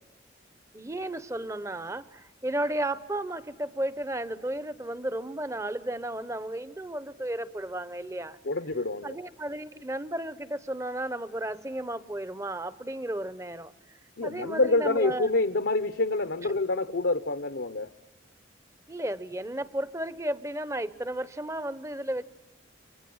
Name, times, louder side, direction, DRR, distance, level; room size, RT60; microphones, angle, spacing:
voice 1, 0.7-8.4 9.0-15.3 18.9-22.2, right 1 dB, 15° right, 14 dB, 0.8 m, -33 dB
voice 2, 8.5-9.1 14.2-17.9, left 2 dB, 70° left, 10 dB, 0.9 m, -27 dB
28.5 x 24.5 x 7.8 m, 1.1 s
head